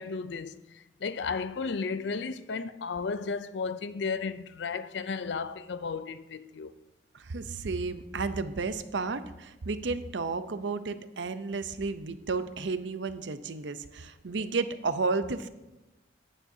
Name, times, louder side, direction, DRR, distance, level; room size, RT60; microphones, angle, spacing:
voice 1, 0.0-6.7, left 5 dB, 70° left, 0.5 m, -34 dB
voice 2, 7.1-15.5, right 4 dB, 75° right, 0.6 m, -32 dB
15.0 x 9.9 x 2.8 m
head